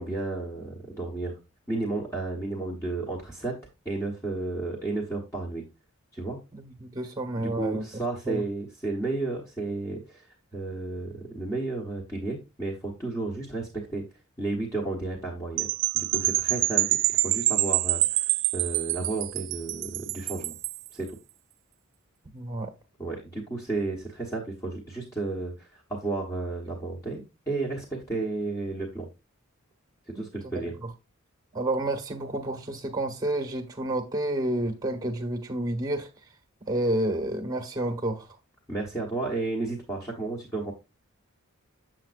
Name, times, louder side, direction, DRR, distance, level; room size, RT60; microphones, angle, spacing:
voice 1, 0.0-1.4 1.7-3.6 3.8-5.6 6.1-6.4 7.4-10.3 10.5-14.0 14.4-15.7 15.9-18.2 18.5-20.6 20.9-21.2 23.0-29.1 30.1-30.7 38.7-40.7, right 3 dB, 15° left, 1.3 m, -32 dB
voice 2, 6.5-7.8 8.2-8.4 22.3-22.7 30.1-30.2 31.5-36.1 36.7-38.3, right 1 dB, 20° right, 1.3 m, -29 dB
sound 1, 15.6-20.9, right 18 dB, 60° right, 0.3 m, -26 dB
7.4 x 7.4 x 2.5 m
head